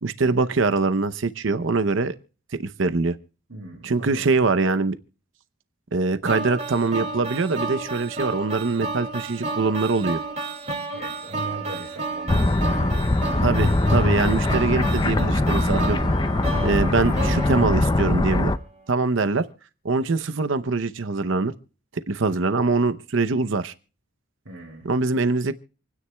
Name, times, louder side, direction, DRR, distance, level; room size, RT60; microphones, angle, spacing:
voice 1, 0.0-2.1 2.6-3.2 3.8-5.0 5.9-10.2 13.4-16.0 16.6-18.5 18.9-19.5 19.8-21.5 21.9-23.7 24.8-25.5, right 3 dB, 65° right, 0.7 m, -23 dB
voice 2, 3.5-4.3 10.9-13.1 24.4-24.9, right 2 dB, 80° right, 2.7 m, -40 dB
sound 1, 6.3-18.5, right 2 dB, 35° right, 2.1 m, -32 dB
sound 2, 10.2-17.3, left 4 dB, 45° left, 1.1 m, -43 dB
sound 3, 12.3-18.6, left 2 dB, 20° left, 0.5 m, -22 dB
28.0 x 9.7 x 2.3 m
head